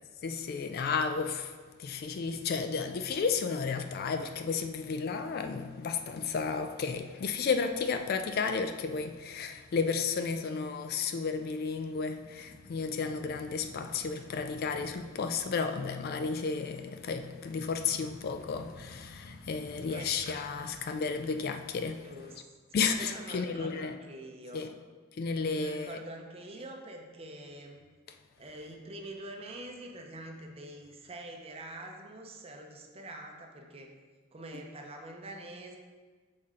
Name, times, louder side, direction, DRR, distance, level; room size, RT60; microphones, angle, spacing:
voice 1, 0.2-1.5 1.8-22.0 22.7-24.0 24.5-24.7 25.2-26.0, left 5 dB, 45° left, 0.3 m, -32 dB
sound 1, 11.7-15.7 17.0-21.0, left 2 dB, 70° left, 0.8 m, -53 dB
voice 2, 22.0-22.4 22.7-24.6 25.5-27.8 28.4-33.9 34.3-35.8, right 1 dB, 30° right, 0.6 m, -45 dB
6.6 x 4.2 x 3.7 m
head